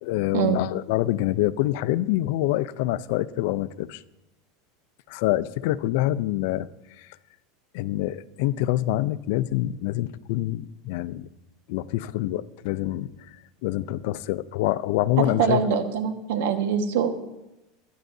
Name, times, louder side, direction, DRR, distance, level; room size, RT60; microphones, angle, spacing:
voice 1, 0.0-4.0 5.1-6.7 7.7-11.3 11.7-13.1 13.6-15.6, left 15 dB, 70° left, 0.5 m, -26 dB
voice 2, 15.2-17.1, right 7 dB, 75° right, 1.5 m, -23 dB
24.0 x 10.5 x 2.7 m
supercardioid pair, 125°, 0 cm